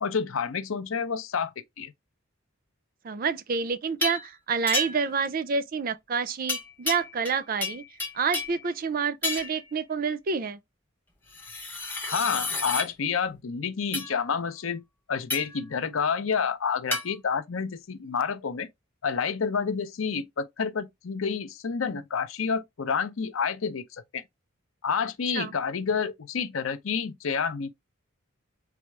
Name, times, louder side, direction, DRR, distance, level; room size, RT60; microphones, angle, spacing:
voice 1, 0.0-1.9 12.1-14.8 15.1-18.7 19.0-24.2 24.8-27.7, left 6 dB, 70° left, 0.6 m, -29 dB
voice 2, 3.0-7.8 8.1-10.6 25.3-25.5, right 5 dB, 40° right, 0.4 m, -28 dB
sound 1, 4.0-4.3 4.7-5.2 6.5-7.4 7.6-8.6 9.2-9.6 11.3-12.9 13.9-14.1 15.3-15.6 16.9-17.1, left 2 dB, 10° left, 0.9 m, -31 dB
4.2 x 2.4 x 4.6 m
head